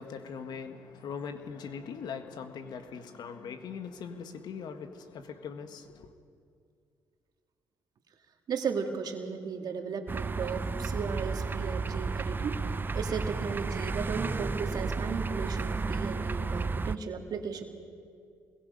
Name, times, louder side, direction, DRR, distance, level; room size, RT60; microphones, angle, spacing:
voice 1, 0.0-6.1, left 6 dB, 65° left, 8 dB, 1.5 m, -41 dB
voice 2, 8.5-12.6 12.9-17.6, right 6 dB, 60° right, 4 dB, 2.3 m, -35 dB
sound 1, 10.1-17.0, right 4 dB, 25° right, 0.6 m, -32 dB
24.5 x 21.5 x 5.3 m, 2.3 s
supercardioid pair, 65°, 8 cm